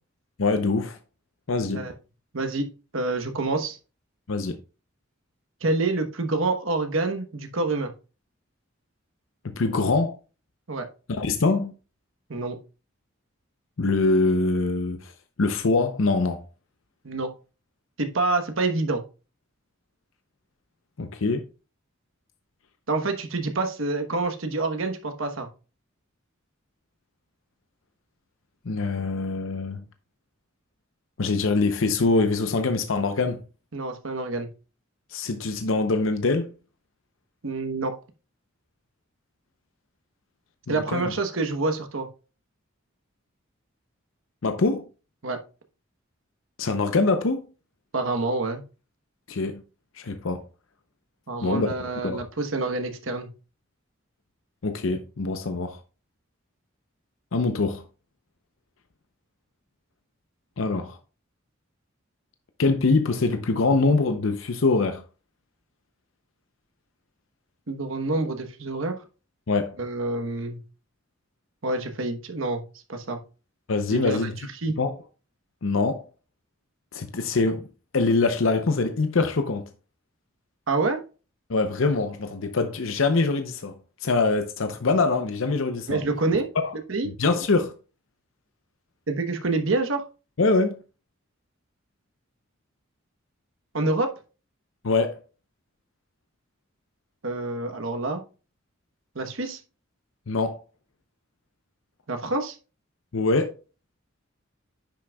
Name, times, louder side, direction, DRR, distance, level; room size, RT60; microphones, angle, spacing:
voice 1, 0.4-1.0 1.5-1.9 4.3-4.6 9.4-10.2 11.1-11.7 13.8-15.1 15.4-16.4 21.0-21.4 28.6-29.8 31.2-33.4 35.1-36.5 40.7-41.1 44.4-44.9 46.6-47.4 49.3-49.6 50.0-50.4 51.4-52.2 54.6-55.8 57.3-57.8 60.6-61.0 62.6-65.0 69.5-69.8 73.7-74.3 74.8-75.0 75.6-76.0 76.9-77.7 77.9-79.7 81.5-83.7 84.0-86.0 86.6-86.7 87.2-87.7 90.4-90.8 94.8-95.2 100.3-100.6 103.1-103.5, left 3 dB, 75° left, 0.7 m, -24 dB
voice 2, 2.3-2.7 2.9-3.8 5.6-7.9 10.7-10.9 12.3-12.6 17.0-17.3 18.0-19.0 22.9-25.5 33.7-34.5 37.4-37.9 40.7-42.1 45.2-45.4 47.9-48.6 51.3-53.3 67.7-69.0 69.8-70.6 71.6-72.6 72.9-73.2 73.9-74.3 74.6-74.7 80.7-81.0 85.9-86.5 86.9-87.1 89.1-90.1 93.7-94.1 97.2-98.2 99.1-99.6 102.1-102.6, right 3 dB, 80° right, 1.1 m, -27 dB
10.0 x 6.2 x 2.3 m
head